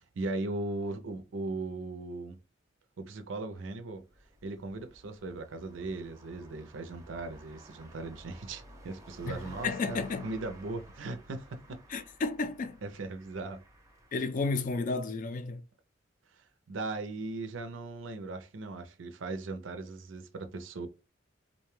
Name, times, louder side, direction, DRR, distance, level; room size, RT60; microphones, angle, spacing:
voice 1, 0.1-2.4 3.0-4.0 4.4-11.8 12.8-13.6 16.7-20.9, right 2 dB, 85° right, 0.5 m, -38 dB
sound 1, 4.0-14.5, right 1 dB, 15° right, 0.5 m, -54 dB
voice 2, 9.3-10.3 11.9-12.8 14.1-15.6, left 3 dB, 45° left, 0.4 m, -32 dB
2.5 x 2.2 x 3.1 m
head